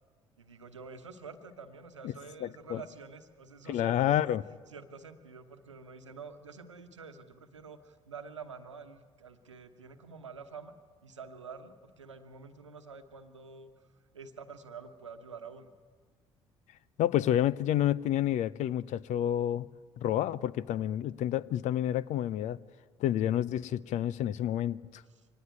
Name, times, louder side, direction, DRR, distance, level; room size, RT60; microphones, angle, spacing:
voice 1, 0.4-4.3 4.7-10.7 11.0-13.9 14.1-15.7 25.1-25.3, right 5 dB, 85° right, 1.2 m, -48 dB
voice 2, 2.4-2.8 3.7-4.4 17.0-19.7 20.0-22.6 23.0-25.0, left 11 dB, 50° left, 0.7 m, -29 dB
25.0 x 19.0 x 9.1 m
figure-of-eight pair, 50°, 15 cm